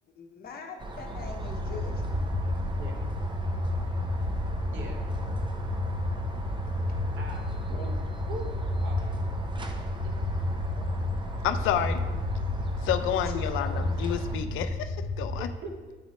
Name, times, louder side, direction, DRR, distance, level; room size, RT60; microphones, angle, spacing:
voice 1, 0.1-2.3 7.7-8.0 13.2-13.8, left 4 dB, 50° left, 1 dB, 0.9 m, -42 dB
sound 1, 0.8-14.4, right 2 dB, 25° right, 0.6 m, -39 dB
sound 2, 1.1-15.4, left 1 dB, 45° right, 1.9 m, -31 dB
voice 2, 7.2-7.6 8.3-9.2 15.4-15.9, right 1 dB, 80° right, 2 dB, 1.0 m, -41 dB
voice 3, 11.4-12.0 12.8-15.5, left 10 dB, 85° left, 10 dB, 0.4 m, -30 dB
8.3 x 3.1 x 4.0 m, 1.3 s
cardioid pair, 90°, 20 cm